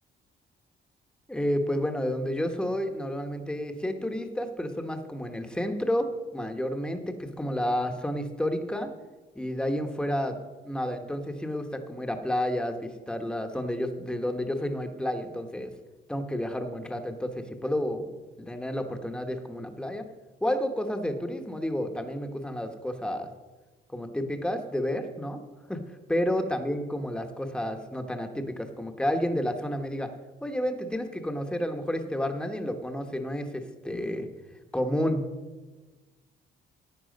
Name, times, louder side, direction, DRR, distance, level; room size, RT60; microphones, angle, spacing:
voice 1, 1.3-6.1 6.3-8.9 9.3-10.4 10.6-15.7 16.1-18.0 18.4-20.1 20.4-23.3 23.9-25.4 25.7-25.8 26.1-30.1 30.4-34.3 34.7-35.2, equal, 5° left, 6 dB, 1.1 m, -30 dB
11.5 x 8.5 x 5.3 m, 1.2 s
cardioid pair, 90°, 20 cm